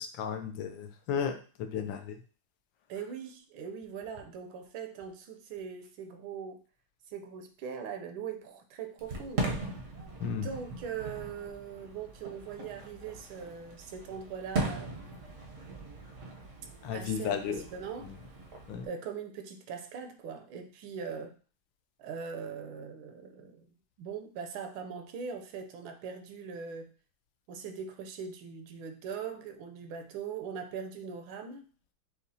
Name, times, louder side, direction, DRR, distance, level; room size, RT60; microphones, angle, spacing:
voice 1, 0.0-1.3 1.7-2.1 10.2-10.5 16.8-17.6 18.7-18.8, left 7 dB, 75° left, 7 dB, 1.3 m, -33 dB
voice 2, 2.9-6.6 7.1-9.5 10.4-14.9 16.9-18.1 18.8-21.3 22.0-23.7 24.0-26.9 27.5-31.7, right 6 dB, 80° right, 6 dB, 1.4 m, -41 dB
Fireworks, 9.0-18.9, right 2 dB, 60° right, 0.8 m, -39 dB
6.5 x 2.4 x 2.7 m, 0.38 s
omnidirectional pair, 2.3 m